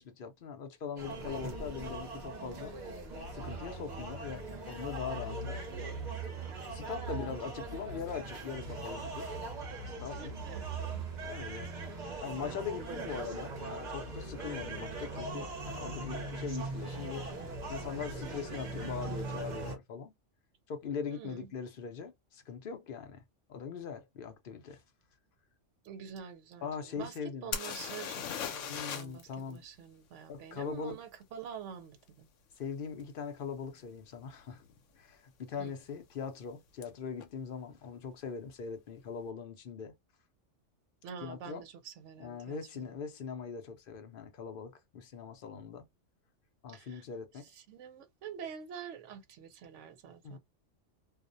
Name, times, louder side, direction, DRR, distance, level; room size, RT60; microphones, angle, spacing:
voice 1, 0.0-2.7 3.3-5.6 6.7-9.3 9.6-10.4 11.2-11.7 12.2-17.3 17.7-20.1 20.7-23.2 23.5-24.8 26.6-27.5 28.6-29.6 30.3-31.0 32.6-34.6 35.0-39.9 41.2-41.6 42.2-45.9 46.6-47.5 50.2-50.4, left 6 dB, 55° left, 0.7 m, -41 dB
sound 1, 1.0-19.8, right 3 dB, 45° right, 0.8 m, -40 dB
voice 2, 10.1-11.1 21.1-21.5 25.8-32.3 35.6-35.7 41.0-42.9 46.7-47.0 47.5-50.4, right 7 dB, 75° right, 0.9 m, -47 dB
sound 2, 27.5-29.2 29.5-29.6 33.0-33.1 33.8-33.9 34.2-34.8 36.8-36.9 37.2-37.3, left 7 dB, 80° left, 0.9 m, -38 dB
2.4 x 2.1 x 2.5 m
omnidirectional pair, 1.3 m